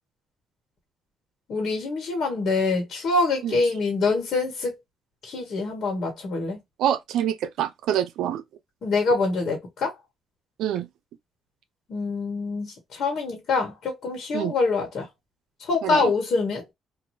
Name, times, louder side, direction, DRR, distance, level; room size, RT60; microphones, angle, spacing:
voice 1, 1.5-4.7 5.3-6.6 8.8-9.9 11.9-15.0 15.7-16.6, left 3 dB, 60° left, 1.3 m, -25 dB
voice 2, 6.8-8.4 10.6-10.9 14.3-14.5 15.8-16.1, right 10 dB, 85° right, 0.4 m, -26 dB
2.7 x 2.5 x 3.1 m
cardioid pair, 90°, 0 cm